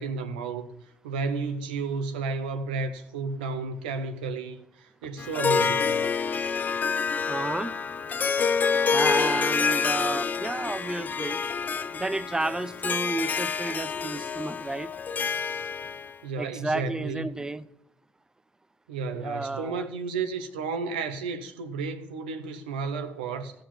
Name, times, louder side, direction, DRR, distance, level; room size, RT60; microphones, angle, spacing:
voice 1, 0.0-6.1 16.2-17.3 18.9-23.5, right 4 dB, 90° right, 0.9 m, -32 dB
Harp, 5.2-16.1, left 6 dB, 35° left, 0.5 m, -27 dB
voice 2, 7.3-7.7 8.9-11.4 11.9-14.9 16.4-17.7 19.1-19.9, right 2 dB, 15° right, 0.6 m, -31 dB
15.5 x 5.3 x 5.8 m
hypercardioid pair, 65°, 5 cm